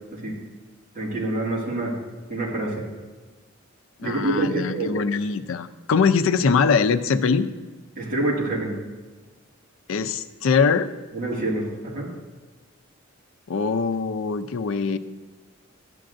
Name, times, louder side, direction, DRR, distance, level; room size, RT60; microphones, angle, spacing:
voice 1, 0.9-1.9 2.3-2.8 4.0-4.9 8.0-8.8 11.1-12.1, right 2 dB, 45° right, -4 dB, 2.3 m, -26 dB
voice 2, 4.0-7.5 9.9-10.9 13.5-15.0, left 5 dB, 85° left, 10 dB, 0.5 m, -22 dB
12.0 x 8.6 x 2.6 m, 1.3 s
head